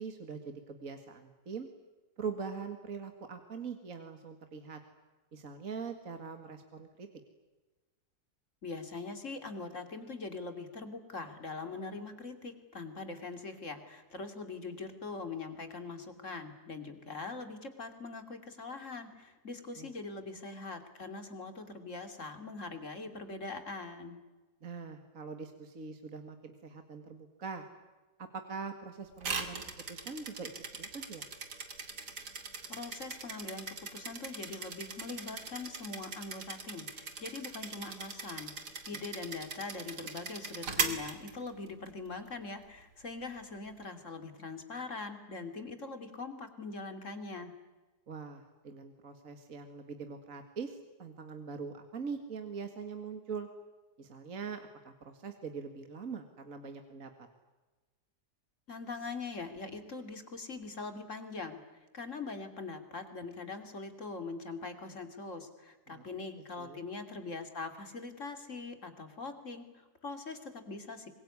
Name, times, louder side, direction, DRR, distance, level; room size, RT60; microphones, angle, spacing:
voice 1, 0.0-1.7 2.2-4.8 5.3-7.1 19.8-19.9 24.6-27.6 28.2-31.3 38.9-39.0 48.1-53.5 54.0-57.3 65.9-66.0 66.6-66.8, right 5 dB, 55° right, 6 dB, 2.3 m, -43 dB
voice 2, 8.6-24.2 32.7-47.5 58.7-61.6 61.9-71.1, left 3 dB, 50° left, 7 dB, 3.2 m, -42 dB
sound 1, 29.2-41.9, right 4 dB, 90° right, 3.1 m, -40 dB
25.0 x 22.5 x 9.7 m, 1.2 s
omnidirectional pair, 1.7 m